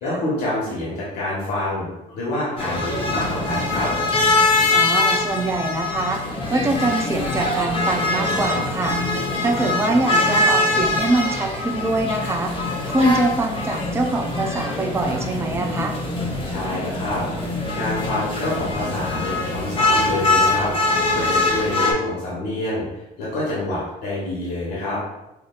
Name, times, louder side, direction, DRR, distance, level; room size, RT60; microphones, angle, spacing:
voice 1, 0.0-3.9 16.4-17.2 17.7-25.0, left 1 dB, 75° left, -7 dB, 1.4 m, -27 dB
sound 1, 2.6-21.9, left 2 dB, 30° left, 1.0 m, -23 dB
voice 2, 4.7-6.2 6.5-9.0 9.4-12.5 12.9-16.0, right 2 dB, 15° right, 2 dB, 0.5 m, -23 dB
4.8 x 2.7 x 2.4 m, 0.94 s
cardioid pair, 110°, 17 cm